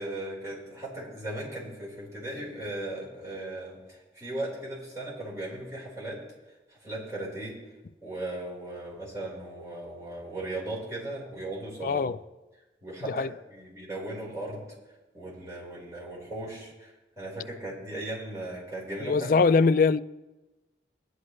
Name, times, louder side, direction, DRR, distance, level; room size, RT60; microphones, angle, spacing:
voice 1, 0.0-6.2 6.8-7.5 8.0-12.0 12.8-13.2 13.5-14.6 15.1-16.9 17.2-19.4, right 1 dB, 20° right, 4.7 m, -37 dB
voice 2, 11.8-12.2 13.0-13.3 19.0-20.0, left 4 dB, 50° left, 0.3 m, -22 dB
19.0 x 11.5 x 3.3 m
head